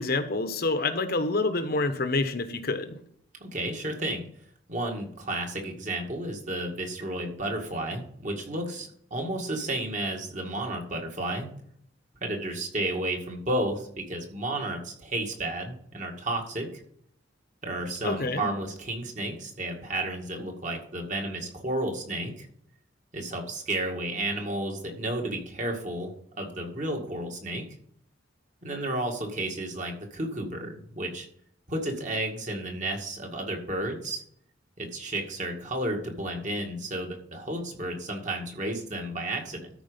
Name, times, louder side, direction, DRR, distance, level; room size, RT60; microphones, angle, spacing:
voice 1, 0.0-2.9 18.0-18.5, left 3 dB, 50° left, 8 dB, 1.1 m, -27 dB
voice 2, 3.4-4.2 4.7-11.5 12.2-16.7 17.6-22.5 23.1-27.6 28.6-31.3 31.7-34.2 34.8-39.7, right 1 dB, 40° right, 2 dB, 2.0 m, -32 dB
13.0 x 5.0 x 5.1 m, 0.65 s
head